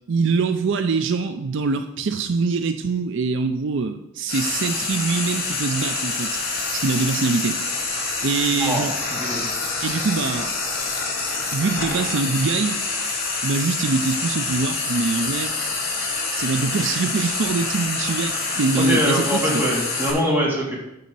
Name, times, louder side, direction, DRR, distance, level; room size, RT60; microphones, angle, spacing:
voice 1, 0.1-6.4 6.7-7.6 7.8-8.9 9.8-10.5 11.5-12.8 13.4-15.5 16.3-19.6, right 4 dB, 65° right, 8 dB, 0.5 m, -24 dB
Frying (food), 4.3-20.1, left 3 dB, 50° left, 2.3 m, -26 dB
voice 2, 8.5-8.9 9.2-9.4 18.8-20.8, equal, 10° right, -4 dB, 2.4 m, -23 dB
9.2 x 4.1 x 6.8 m, 0.89 s
head